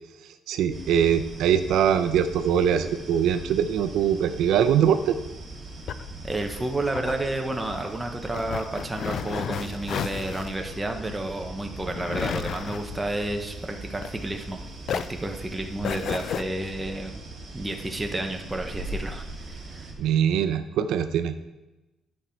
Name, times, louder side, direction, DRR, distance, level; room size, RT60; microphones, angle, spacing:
voice 1, 0.5-5.2 20.0-21.3, right 8 dB, 80° right, 10 dB, 0.5 m, -22 dB
sound 1, 0.7-19.9, right 2 dB, 30° right, 2.0 m, -40 dB
sound 2, 5.4-14.5 14.8-16.4, left 8 dB, 50° left, 0.3 m, -34 dB
voice 2, 6.2-14.6 14.9-17.2 17.5-19.9, right 2 dB, 10° right, 3 dB, 0.7 m, -31 dB
10.5 x 5.3 x 4.4 m, 1.0 s
cardioid pair, 170°, 0 cm